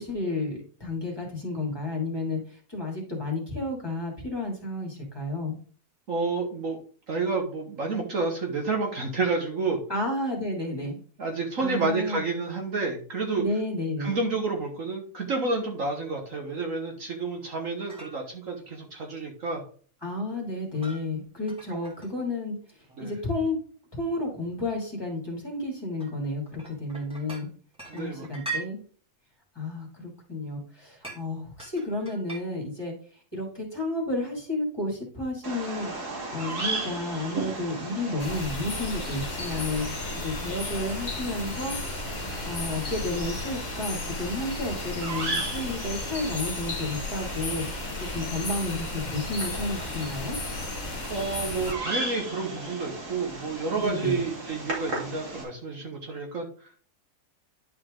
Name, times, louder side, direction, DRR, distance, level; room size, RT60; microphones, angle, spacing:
voice 1, 0.0-5.6 9.9-11.0 11.6-12.2 13.4-14.1 20.0-22.5 23.0-23.6 23.9-27.5 27.9-28.8 29.5-32.9 33.3-35.9 36.3-39.9 40.1-41.8 42.4-50.4 53.7-54.2, left 2 dB, 15° left, -2 dB, 2.6 m, -31 dB
voice 2, 6.1-6.8 7.1-9.8 11.2-13.4 14.0-19.6 21.7-21.8 23.0-23.1 27.9-28.3 51.1-56.7, right 3 dB, 55° right, 2 dB, 1.6 m, -30 dB
sound 1, 17.9-18.2 20.5-21.1 21.5-22.1 22.7-23.2 24.3-24.5 25.1-25.2 26.0-27.4 27.7-28.7 31.0-31.2 31.6-32.4, right 4 dB, 5° right, 2.3 m, -40 dB
Bird vocalization bird call bird song, 35.4-55.4, right 2 dB, 70° right, 3.1 m, -36 dB
sound 2, 38.2-51.7, left 3 dB, 30° left, 1.1 m, -34 dB
10.5 x 4.5 x 3.8 m, 0.43 s
omnidirectional pair, 1.7 m